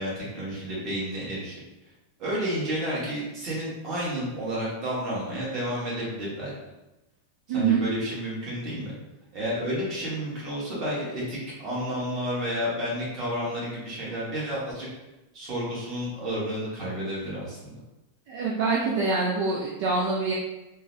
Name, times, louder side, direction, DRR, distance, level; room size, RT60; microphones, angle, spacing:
voice 1, 0.0-1.6 2.2-6.5 7.5-8.9 9.3-14.9 15.3-17.8, equal, 25° right, -6 dB, 1.1 m, -31 dB
voice 2, 7.5-7.8 18.3-20.3, right 4 dB, 45° right, -3 dB, 0.4 m, -25 dB
3.7 x 2.0 x 2.6 m, 1.0 s
supercardioid pair, 170°, 0 cm